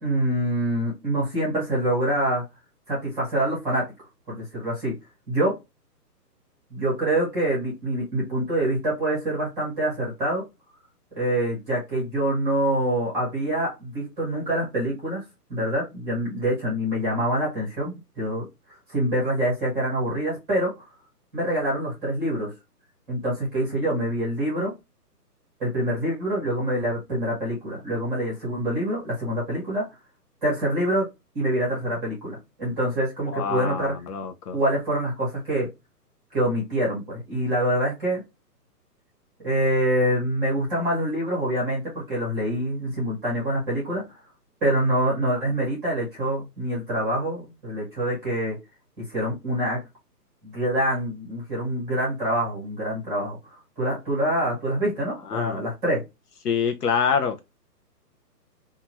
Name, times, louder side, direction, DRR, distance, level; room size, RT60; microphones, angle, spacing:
voice 1, 0.0-2.4 2.9-3.8 4.3-4.9 5.3-5.5 6.7-10.4 11.1-15.2 15.5-20.9 21.3-22.5 23.1-24.7 25.6-29.8 30.4-31.1 31.3-33.9 34.5-35.7 36.3-38.2 39.4-44.2 44.6-48.6 49.1-49.8 50.4-56.0, right 1 dB, 5° right, 0.7 m, -25 dB
voice 2, 33.3-34.6 55.3-55.6 56.4-57.4, left 6 dB, 70° left, 0.6 m, -26 dB
2.8 x 2.3 x 2.8 m
hypercardioid pair, 150°, 49 cm